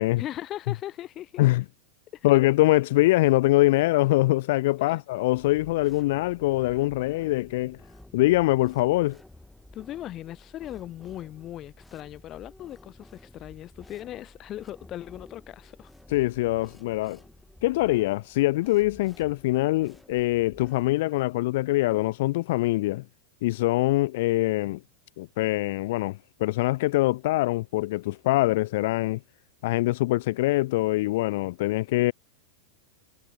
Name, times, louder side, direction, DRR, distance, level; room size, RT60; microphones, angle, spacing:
voice 1, 0.2-1.4 2.1-2.3 4.9-5.0 9.7-15.9, left 13 dB, 35° left, 3.6 m, -39 dB
voice 2, 2.2-7.8 8.1-9.2 16.1-17.2 17.6-23.0 23.4-24.8 25.2-29.2 29.6-32.1, left 18 dB, 65° left, 1.2 m, -23 dB
sound 1, 5.3-20.9, left 1 dB, 5° left, 7.6 m, -52 dB
hypercardioid pair, 105°, 0 cm